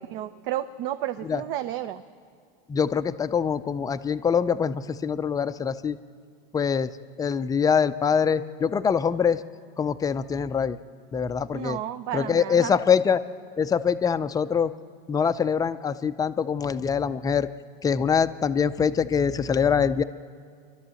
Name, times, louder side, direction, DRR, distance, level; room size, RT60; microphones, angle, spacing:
voice 1, 0.1-2.0 11.5-12.8, right 12 dB, 55° right, 9 dB, 0.8 m, -32 dB
voice 2, 2.7-6.0 6.5-6.9 7.2-9.4 9.8-10.8 11.1-11.8 12.1-13.2 13.6-14.7 15.1-17.5 17.8-20.0, left 6 dB, 10° left, 11 dB, 0.4 m, -24 dB
29.0 x 12.0 x 7.6 m, 2.2 s
supercardioid pair, 135°, 31 cm